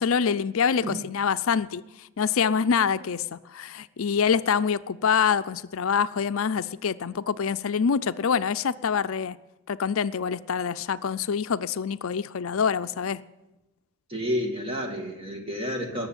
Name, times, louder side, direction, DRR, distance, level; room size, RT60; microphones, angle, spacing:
voice 1, 0.0-9.4 9.7-13.2, left 6 dB, 70° left, 0.5 m, -25 dB
voice 2, 14.1-16.1, equal, 25° right, 2.2 m, -30 dB
19.5 x 7.2 x 9.1 m
head